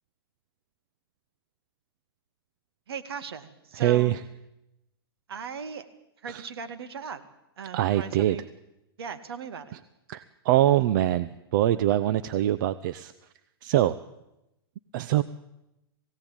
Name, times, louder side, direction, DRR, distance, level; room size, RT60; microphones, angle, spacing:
voice 1, 2.9-4.1 5.3-5.9 6.2-7.2 7.6-8.4 9.0-9.8, right 6 dB, 70° right, 9 dB, 2.2 m, -38 dB
voice 2, 3.7-4.2 6.3-6.5 7.7-8.4 10.1-13.1 13.6-14.0 14.9-15.2, right 13 dB, 50° right, 13 dB, 0.8 m, -23 dB
21.5 x 16.5 x 9.0 m, 0.90 s
hypercardioid pair, 120°, 13 cm